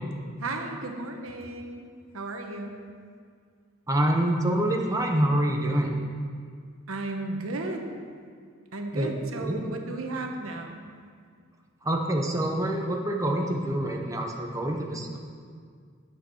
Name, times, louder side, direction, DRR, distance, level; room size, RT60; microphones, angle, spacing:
voice 1, 0.4-1.9 2.1-2.8 6.9-7.9 8.7-10.9, right 2 dB, 85° right, 3 dB, 1.1 m, -34 dB
voice 2, 3.9-6.0 8.9-9.1 9.4-9.7 11.8-15.2, right 1 dB, 15° right, 1 dB, 0.8 m, -26 dB
9.7 x 7.4 x 6.2 m, 2.1 s
head